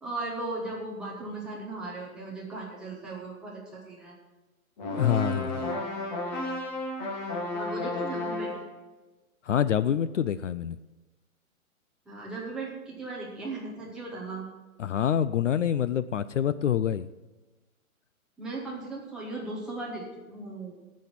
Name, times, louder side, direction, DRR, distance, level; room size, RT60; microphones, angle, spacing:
voice 1, 0.0-4.2 7.5-8.5 12.1-14.5 18.4-20.7, right 2 dB, ahead, -6 dB, 0.8 m, -37 dB
sound 1, 4.8-8.8, left 2 dB, 30° left, 2.0 m, -32 dB
voice 2, 4.9-5.7 9.4-10.8 14.8-17.1, left 9 dB, 60° left, 14 dB, 0.5 m, -26 dB
15.0 x 6.4 x 5.8 m, 1.1 s
hypercardioid pair, 165°, 43 cm